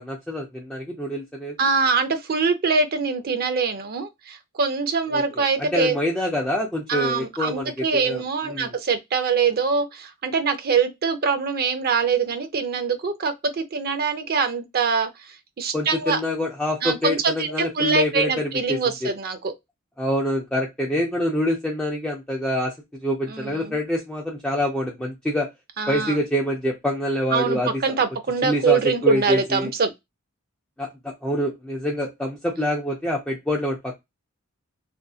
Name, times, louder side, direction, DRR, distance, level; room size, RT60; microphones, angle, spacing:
voice 1, 0.0-1.6 5.1-8.8 15.7-19.1 20.0-22.7 23.0-25.5 25.9-27.8 28.4-29.7 30.8-34.0, left 1 dB, 5° left, 0.5 m, -26 dB
voice 2, 1.6-5.9 6.9-16.2 16.8-17.5 17.7-19.5 23.3-23.8 25.8-26.2 27.3-29.9, right 5 dB, 45° right, 0.5 m, -24 dB
2.6 x 2.5 x 2.3 m
head